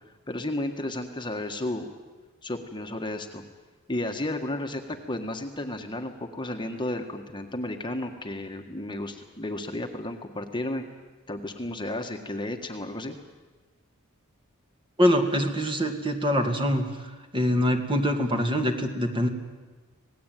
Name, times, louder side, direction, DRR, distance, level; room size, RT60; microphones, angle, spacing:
voice 1, 0.3-1.9 2.4-3.4 3.9-10.8 11.3-13.2, left 1 dB, 20° left, 4 dB, 1.7 m, -33 dB
voice 2, 15.0-16.9 17.3-19.3, equal, 25° right, 4 dB, 2.3 m, -24 dB
26.5 x 19.0 x 9.3 m, 1.3 s
head